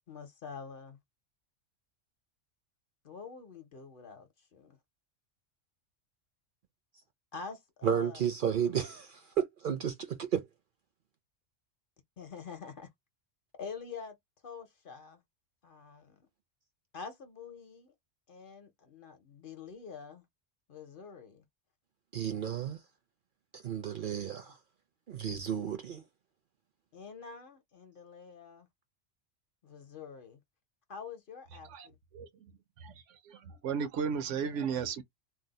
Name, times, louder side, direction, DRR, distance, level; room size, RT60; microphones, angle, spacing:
voice 1, 0.1-1.0 3.0-4.8 7.3-8.2 8.5-8.8 12.2-12.9 13.6-14.2 14.4-15.2 15.6-16.2 16.9-17.9 18.3-20.2 20.7-21.4 26.9-28.7 29.6-30.4 30.9-32.0, left 5 dB, 50° left, 0.8 m, -46 dB
voice 2, 7.8-10.5 22.1-22.8 23.5-24.6 25.1-26.0, right 8 dB, 55° right, 0.6 m, -32 dB
voice 3, 31.6-32.5 32.8-35.0, right 6 dB, 80° right, 0.9 m, -35 dB
2.6 x 2.0 x 3.9 m
omnidirectional pair, 1.3 m